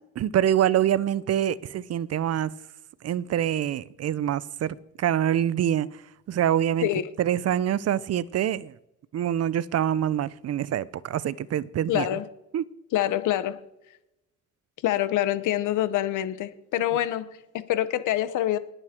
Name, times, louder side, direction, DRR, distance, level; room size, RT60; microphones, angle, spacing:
voice 1, 0.2-2.5 3.0-6.0 6.3-6.9 7.2-8.7 9.1-12.1 12.5-12.6, right 10 dB, 55° right, 0.7 m, -25 dB
voice 2, 11.9-12.3 12.9-13.6 14.8-18.6, left 13 dB, 85° left, 1.1 m, -26 dB
20.0 x 8.0 x 4.5 m
cardioid pair, 90°, 30 cm